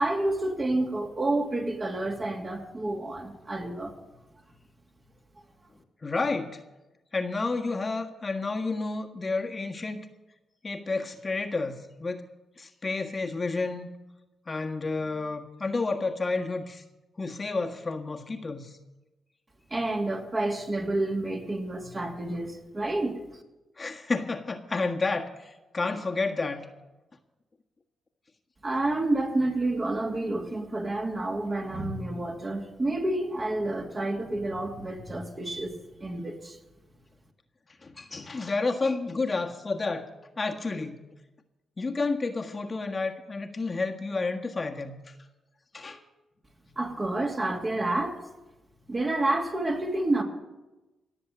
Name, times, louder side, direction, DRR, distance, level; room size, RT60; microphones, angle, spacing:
voice 1, 0.0-3.9 19.7-23.2 28.6-36.6 46.8-48.2 48.9-50.2, right 2 dB, 35° right, 2 dB, 2.8 m, -29 dB
voice 2, 6.0-6.6 7.1-10.0 10.6-12.3 12.6-13.9 14.5-16.8 17.2-18.7 23.8-26.6 37.8-40.0 40.4-41.0 41.8-45.0 45.7-46.0, left 3 dB, 40° left, 4 dB, 1.5 m, -30 dB
17.5 x 7.1 x 9.2 m, 1.1 s
hypercardioid pair, 40°, 0 cm